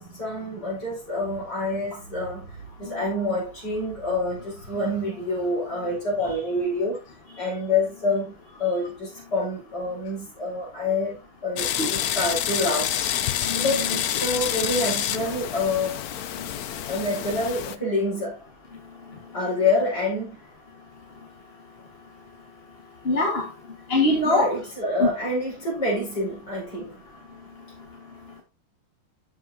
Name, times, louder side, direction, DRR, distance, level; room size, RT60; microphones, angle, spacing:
voice 1, 0.0-7.0 7.3-13.0 13.5-16.0 16.9-18.4 19.3-20.4 24.2-27.0, left 2 dB, 50° left, 5.7 m, -27 dB
sound 1, 11.6-17.8, left 10 dB, 70° left, 0.9 m, -28 dB
voice 2, 13.5-14.0 23.1-23.4 23.9-24.5 24.8-25.1, left 2 dB, 30° left, 1.7 m, -23 dB
13.5 x 5.5 x 2.8 m
omnidirectional pair, 2.3 m